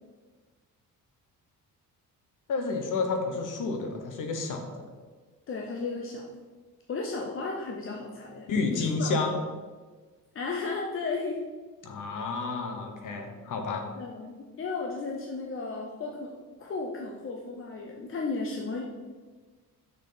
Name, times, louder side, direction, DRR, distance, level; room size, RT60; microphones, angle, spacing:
voice 1, 2.5-4.9 8.5-9.3 11.8-13.8, left 4 dB, 60° left, 4 dB, 1.2 m, -30 dB
voice 2, 5.5-6.2 6.9-9.2 10.3-11.4 13.9-18.8, left 3 dB, 35° left, 0 dB, 0.7 m, -34 dB
6.5 x 6.4 x 4.0 m, 1.4 s
cardioid pair, 150°, 35 cm